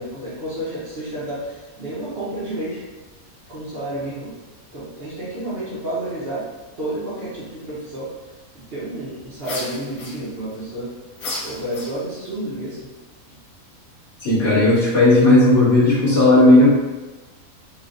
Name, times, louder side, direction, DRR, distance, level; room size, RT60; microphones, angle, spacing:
voice 1, 0.0-2.8 3.5-4.3 4.7-6.4 6.8-8.1 8.7-10.9 11.4-12.9, right 1 dB, 50° right, -8 dB, 1.0 m, -30 dB
sound 1, 9.4-10.6 11.2-12.3, left 2 dB, 70° left, 1.1 m, -33 dB
voice 2, 14.2-16.7, left 2 dB, 55° left, -11 dB, 1.9 m, -14 dB
4.3 x 2.4 x 2.5 m, 1.2 s
omnidirectional pair, 1.5 m